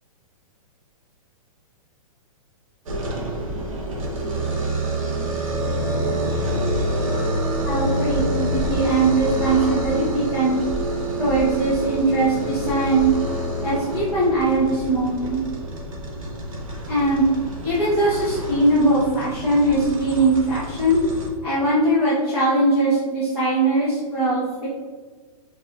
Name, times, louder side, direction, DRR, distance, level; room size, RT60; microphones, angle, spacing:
sound 1, 2.9-21.3, right 1 dB, 60° right, 1.1 m, -27 dB
voice 1, 7.6-10.6 11.2-13.1 13.6-15.4 16.9-17.2 17.6-21.0 21.4-24.7, right 2 dB, 10° right, -13 dB, 0.9 m, -21 dB
4.8 x 4.2 x 2.5 m, 1.5 s
hypercardioid pair, 170°, 19 cm